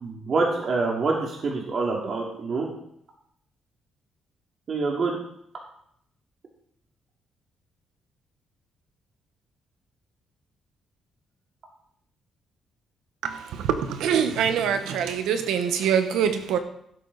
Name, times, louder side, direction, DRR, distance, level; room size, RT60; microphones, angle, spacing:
voice 1, 0.0-2.7 4.7-5.1, right 3 dB, 50° right, -2 dB, 2.6 m, -26 dB
voice 2, 13.2-16.6, right 8 dB, 85° right, 8 dB, 1.4 m, -24 dB
16.5 x 8.5 x 4.2 m, 0.72 s
cardioid pair, 90°, 0 cm